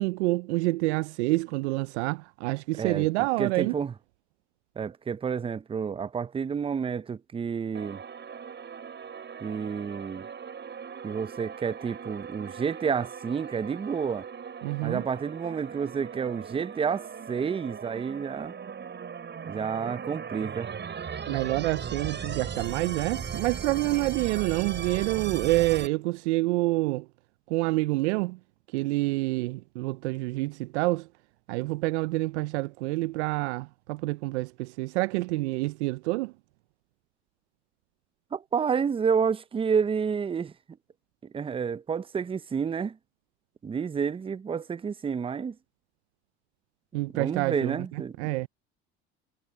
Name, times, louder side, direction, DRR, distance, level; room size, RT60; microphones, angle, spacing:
voice 1, 0.0-3.7 14.6-15.0 21.3-27.1 27.5-28.4 28.7-31.1 31.5-36.3 46.9-47.8 48.2-48.5, right 21 dB, 85° right, 0.5 m, -27 dB
voice 2, 2.8-3.1 3.4-3.9 4.8-8.0 9.4-10.3 11.0-14.3 14.8-18.5 19.4-20.7 38.3-40.5 41.2-43.0 43.6-45.6 47.1-48.3, right 6 dB, 15° right, 0.5 m, -30 dB
sound 1, 7.7-25.9, right 7 dB, 35° right, 7.2 m, -38 dB
hypercardioid pair, 85°, 33 cm